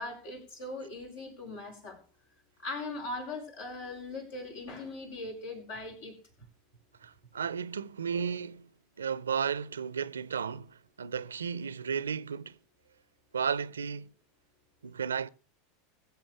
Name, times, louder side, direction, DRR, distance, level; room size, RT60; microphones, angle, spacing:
voice 1, 0.0-2.0 2.6-6.2, left 2 dB, 70° left, 5.7 m, -40 dB
voice 2, 7.0-8.7 9.0-12.6 13.3-14.1 14.8-15.3, right 6 dB, 80° right, 0.6 m, -34 dB
21.5 x 7.6 x 3.5 m
figure-of-eight pair, 85°, 0 cm